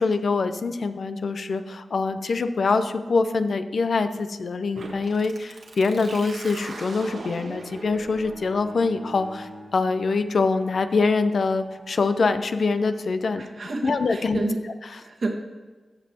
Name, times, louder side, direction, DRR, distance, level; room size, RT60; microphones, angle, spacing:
voice 1, 0.0-13.5 13.8-14.4, left 4 dB, 70° left, 9 dB, 0.5 m, -24 dB
sound 1, 4.7-12.3, right 2 dB, 85° right, 1.3 m, -42 dB
Bowed string instrument, 6.3-10.9, left 1 dB, 40° left, 2.5 m, -46 dB
voice 2, 13.4-14.6 14.9-15.3, right 3 dB, 65° right, 1 dB, 1.4 m, -29 dB
14.5 x 5.3 x 2.9 m, 1.3 s
cardioid pair, 40°, 0 cm